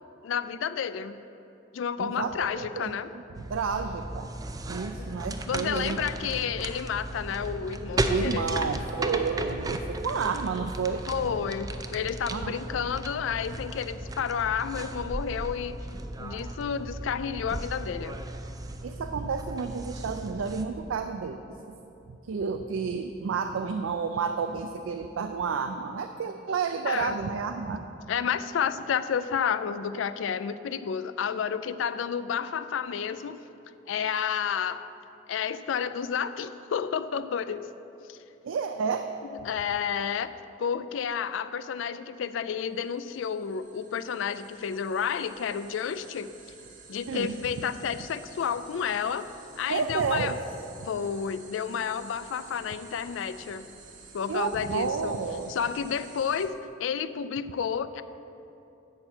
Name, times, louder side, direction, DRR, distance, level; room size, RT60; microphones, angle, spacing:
voice 1, 0.2-1.2 1.7-3.1 5.0-5.1 5.5-8.5 11.1-15.8 16.2-18.2 26.9-27.2 28.1-33.4 33.9-34.8 35.3-37.7 38.1-38.2 39.4-40.3 40.6-46.3 46.9-49.3 49.6-50.3 50.9-53.7 54.1-55.1 55.5-56.5 56.8-58.0, left 7 dB, 75° left, 13 dB, 0.4 m, -31 dB
voice 2, 2.0-2.9 3.5-4.3 4.7-6.0 8.1-11.0 12.3-12.6 18.8-21.4 22.3-27.8 38.4-39.1 47.1-47.3 49.7-50.4 54.3-55.5, right 5 dB, 85° right, 7 dB, 0.4 m, -30 dB
sound 1, 3.3-20.7, right 1 dB, 20° right, 0.4 m, -35 dB
sound 2, 42.9-56.5, right 4 dB, 45° right, 1.2 m, -51 dB
10.5 x 4.3 x 7.7 m, 2.8 s
head